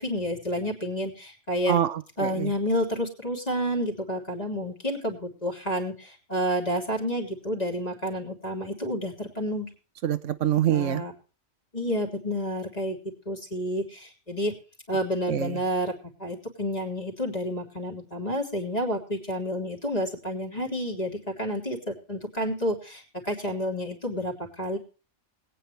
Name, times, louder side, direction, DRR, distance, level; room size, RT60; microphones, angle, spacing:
voice 1, 0.0-1.8 2.2-9.7 10.7-11.1 11.7-13.0 13.2-14.5 14.9-15.9 16.2-24.8, equal, 30° left, 0 dB, 3.4 m, -30 dB
voice 2, 1.7-2.5 10.0-11.0 15.3-15.6, right 10 dB, 85° right, 12 dB, 1.1 m, -25 dB
21.0 x 9.3 x 3.3 m, 0.36 s
omnidirectional pair, 1.3 m